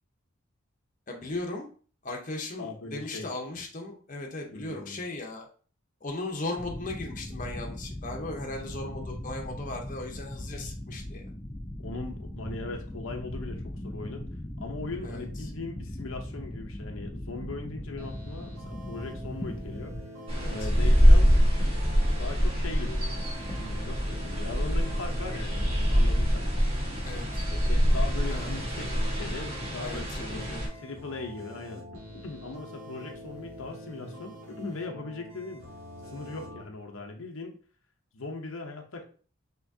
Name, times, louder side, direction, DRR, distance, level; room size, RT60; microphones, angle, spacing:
voice 1, 1.1-1.7 2.0-5.5 6.0-11.2 15.0-15.2 20.3-20.7 27.0-27.2 28.3-28.6 29.8-30.7, left 2 dB, 40° left, 1 dB, 0.7 m, -37 dB
voice 2, 2.6-3.3 4.5-5.0 11.8-14.3 14.6-19.9 20.4-21.4 21.9-23.3 23.6-26.5 27.5-35.7 36.1-37.6 38.1-39.0, left 3 dB, 70° left, 3 dB, 0.7 m, -39 dB
sound 1, 6.6-20.0, left 1 dB, 10° left, 0.4 m, -39 dB
sound 2, 18.0-36.6, equal, 80° right, 1.6 m, -45 dB
sound 3, 20.3-30.7, equal, 25° right, 1.3 m, -24 dB
5.8 x 2.9 x 2.6 m, 0.41 s
head